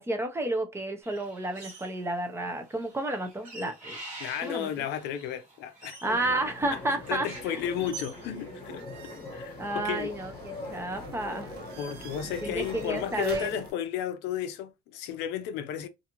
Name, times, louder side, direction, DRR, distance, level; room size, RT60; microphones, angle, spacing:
voice 1, 0.0-4.0 4.4-4.8 6.0-7.6 9.6-11.5 12.4-13.5, right 2 dB, 15° right, 0.6 m, -31 dB
sound 1, 1.0-2.2 2.5-8.7, right 3 dB, 45° right, 1.5 m, -46 dB
voice 2, 4.2-6.0 6.7-6.8 7.1-8.8 9.3-10.1 11.8-15.9, left 9 dB, 80° left, 0.5 m, -33 dB
sound 2, 6.0-13.7, left 2 dB, 30° left, 1.1 m, -42 dB
sound 3, 8.8-13.7, right 4 dB, 70° right, 0.7 m, -47 dB
2.6 x 2.4 x 2.8 m
cardioid pair, 115°, 17 cm